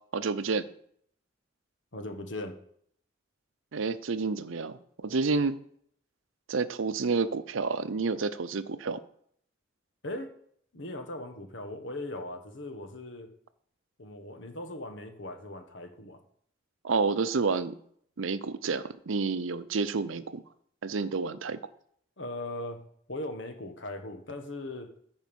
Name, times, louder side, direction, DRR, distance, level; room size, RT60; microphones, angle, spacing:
voice 1, 0.1-0.7 3.7-5.6 6.5-9.0 16.8-17.8 18.2-20.4 20.8-21.6, right 4 dB, 85° right, 14 dB, 0.6 m, -29 dB
voice 2, 1.9-2.6 10.0-10.3 10.7-13.3 14.0-16.2 22.2-24.9, left 1 dB, 70° left, 6 dB, 1.5 m, -39 dB
14.0 x 5.3 x 5.4 m, 0.66 s
head